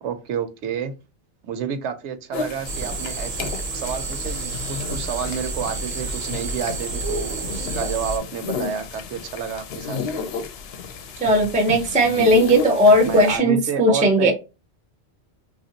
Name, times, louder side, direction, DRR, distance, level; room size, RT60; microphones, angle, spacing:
voice 1, 0.0-0.9 1.4-10.5 13.0-14.3, right 7 dB, 85° right, 0.9 m, -30 dB
sound 1, 2.3-13.4, left 5 dB, 70° left, 0.8 m, -33 dB
sound 2, 2.6-8.2, right 3 dB, 50° right, 0.6 m, -30 dB
voice 2, 11.2-14.3, equal, 15° right, 0.3 m, -17 dB
3.0 x 2.5 x 2.7 m
omnidirectional pair, 1.1 m